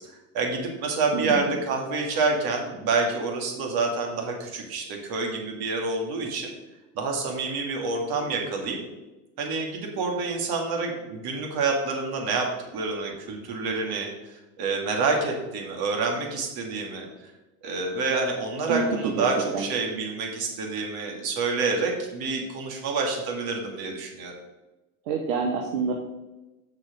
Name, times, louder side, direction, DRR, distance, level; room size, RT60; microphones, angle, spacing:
voice 1, 0.3-6.5 7.0-8.8 9.4-12.5 12.7-17.3 17.6-24.3, right 3 dB, 60° right, 1 dB, 2.3 m, -28 dB
voice 2, 1.1-1.6 18.7-19.3 19.5-19.7 25.1-25.9, right 4 dB, 80° right, 2 dB, 1.1 m, -27 dB
6.8 x 6.1 x 5.0 m, 1.0 s
hypercardioid pair, 85°, 41 cm